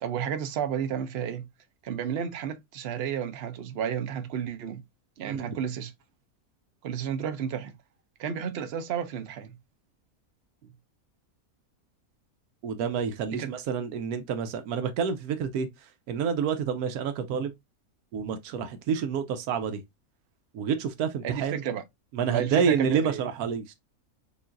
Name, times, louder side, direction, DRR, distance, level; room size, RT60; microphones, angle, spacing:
voice 1, 0.0-1.5 1.8-4.8 5.2-5.9 6.8-7.7 8.2-9.5 13.3-13.5 21.2-21.8 22.3-23.2, right 8 dB, 55° right, 0.7 m, -32 dB
voice 2, 12.6-15.7 16.1-17.5 18.1-19.8 20.5-21.6 22.1-23.7, right 7 dB, 85° right, 1.1 m, -28 dB
6.8 x 2.5 x 2.5 m
omnidirectional pair, 1.6 m